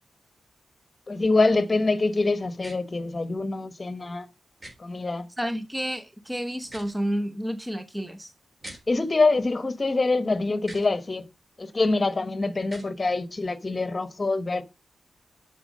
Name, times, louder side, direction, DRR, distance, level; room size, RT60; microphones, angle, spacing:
voice 1, 1.1-4.3 4.8-5.3 8.9-11.3 11.6-14.6, left 3 dB, 35° left, 1.2 m, -25 dB
sound 1, 2.6-2.8 4.6-4.7 6.6-6.9 8.6-8.8 10.6-10.9 12.6-12.9, right 1 dB, 25° right, 4.3 m, -43 dB
voice 2, 5.4-8.3, equal, 10° right, 1.0 m, -30 dB
7.1 x 5.8 x 5.3 m
cardioid pair, 60°, 0 cm